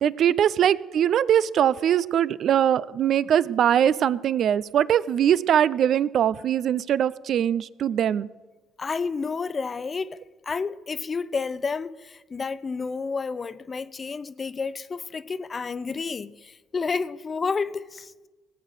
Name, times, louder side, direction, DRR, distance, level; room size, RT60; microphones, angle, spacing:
voice 1, 0.0-8.3, right 9 dB, 60° right, 0.4 m, -22 dB
voice 2, 8.8-10.2 10.4-18.1, left 4 dB, 35° left, 0.7 m, -30 dB
18.0 x 8.1 x 6.4 m
supercardioid pair, 65°, 0 cm